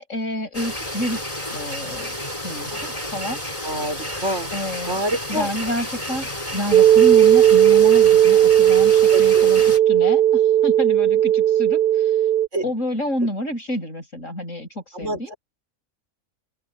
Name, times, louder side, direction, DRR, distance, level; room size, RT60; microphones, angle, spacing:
voice 1, 0.0-2.2 2.4-3.4 4.5-5.0 5.3-12.3 12.6-15.4, equal, 60° left, 7.7 m, -29 dB
sound 1, 0.5-9.8, left 1 dB, 25° left, 4.8 m, -31 dB
voice 2, 3.6-4.5 4.9-5.5 9.1-9.5 12.5-12.7 14.9-15.4, right 1 dB, 55° right, 6.0 m, -27 dB
sound 2, 6.7-12.5, right 11 dB, 35° right, 1.3 m, -15 dB
open air
omnidirectional pair, 1.5 m